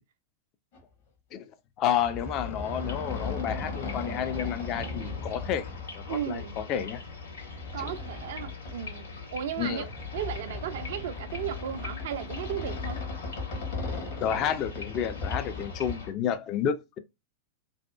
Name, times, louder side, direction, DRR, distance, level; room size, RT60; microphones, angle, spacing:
sound 1, 0.7-0.8 1.9-5.8 6.6-6.7 7.4-8.7 9.8-15.9, left 3 dB, 55° left, 0.9 m, -37 dB
voice 1, 1.8-5.7 5.9-7.0 7.8-7.9 9.6-9.9 14.2-17.0, left 9 dB, 35° left, 0.4 m, -30 dB
sound 2, 2.6-16.1, left 4 dB, 70° left, 1.3 m, -41 dB
voice 2, 6.1-6.6 7.7-13.0, right 10 dB, 55° right, 0.3 m, -35 dB
2.6 x 2.3 x 2.2 m
figure-of-eight pair, 90°, 0 cm